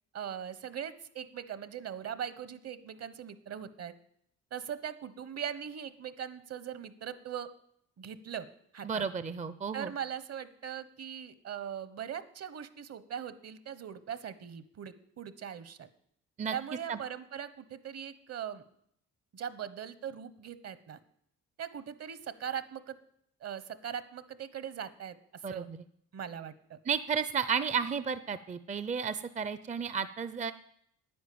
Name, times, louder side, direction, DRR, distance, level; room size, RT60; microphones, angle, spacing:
voice 1, 0.1-3.9 4.5-7.5 8.0-8.5 8.7-9.0 9.7-15.9 16.5-18.6 19.3-21.0 21.6-23.0 23.4-25.7 26.1-26.8, right 8 dB, 55° right, 14 dB, 1.2 m, -40 dB
voice 2, 8.8-9.9 16.4-16.5 16.9-17.0 25.4-25.8 26.9-30.5, right 6 dB, 25° right, 13 dB, 0.6 m, -33 dB
10.5 x 9.6 x 8.6 m, 0.72 s
cardioid pair, 90°, 30 cm